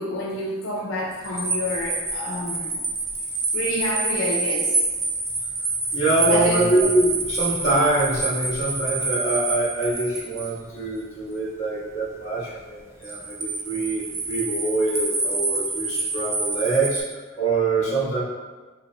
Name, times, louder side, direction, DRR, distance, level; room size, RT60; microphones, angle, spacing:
voice 1, 0.0-2.8 3.5-4.8 6.2-6.6 17.8-18.0, equal, 80° left, -3 dB, 0.5 m, -28 dB
sound 1, 1.2-10.5 13.0-17.0, right 3 dB, 15° right, 0.3 m, -27 dB
voice 2, 5.9-18.2, right 2 dB, 35° left, -9 dB, 1.5 m, -24 dB
4.6 x 2.2 x 3.8 m, 1.3 s
head